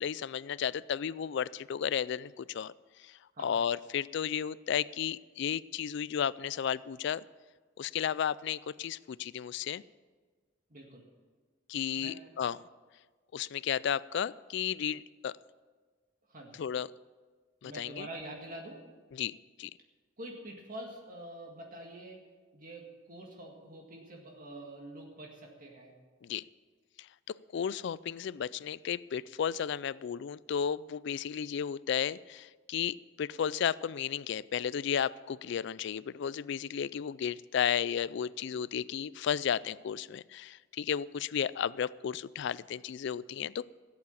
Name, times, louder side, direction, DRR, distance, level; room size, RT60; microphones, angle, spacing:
voice 1, 0.0-2.7 3.0-3.1 3.4-7.2 7.8-9.8 11.7-12.6 13.3-15.4 16.6-16.9 17.6-18.1 19.1-19.3 19.6-19.7 26.2-26.4 27.5-43.8, left 8 dB, 60° left, 20 dB, 0.3 m, -33 dB
voice 2, 10.7-11.1 12.0-12.2 16.3-16.6 17.6-18.8 20.2-22.2 22.5-25.9, right 1 dB, 45° right, 0 dB, 1.9 m, -46 dB
16.5 x 8.4 x 7.1 m, 1.4 s
head